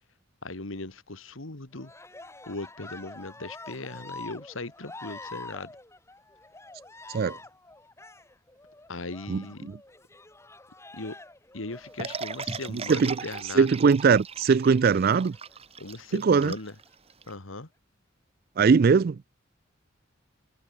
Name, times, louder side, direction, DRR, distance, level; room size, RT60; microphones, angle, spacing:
voice 1, 0.4-1.9 2.5-5.7 8.9-9.7 10.9-11.2 11.5-13.7 15.8-16.7 17.3-17.7, left 2 dB, 85° left, 2.0 m, -38 dB
Cheering, 1.8-13.5 14.7-15.6 16.3-16.9, left 2 dB, 15° left, 2.3 m, -47 dB
voice 2, 9.3-9.8 12.7-13.2 13.5-15.4 16.1-16.5 18.6-19.2, right 5 dB, 50° right, 0.4 m, -21 dB
sound 1, 12.0-17.3, right 5 dB, 30° right, 1.4 m, -38 dB
head